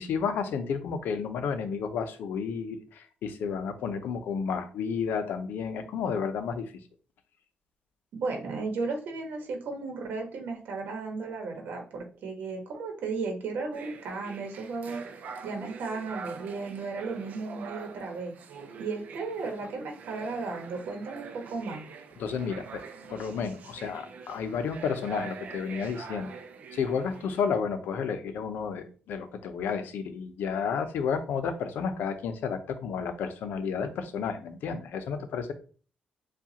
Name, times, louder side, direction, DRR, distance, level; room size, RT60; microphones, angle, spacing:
voice 1, 0.0-6.7 22.2-22.8 23.1-26.3 26.7-35.5, left 6 dB, 80° left, 9 dB, 0.7 m, -31 dB
voice 2, 8.1-15.0 15.4-18.3 18.8-21.9, right 4 dB, 70° right, 3 dB, 1.2 m, -35 dB
sound 1, 13.7-27.4, right 5 dB, 55° right, 0.6 m, -44 dB
7.2 x 2.4 x 2.8 m, 0.39 s
wide cardioid pair, 175°, 3 cm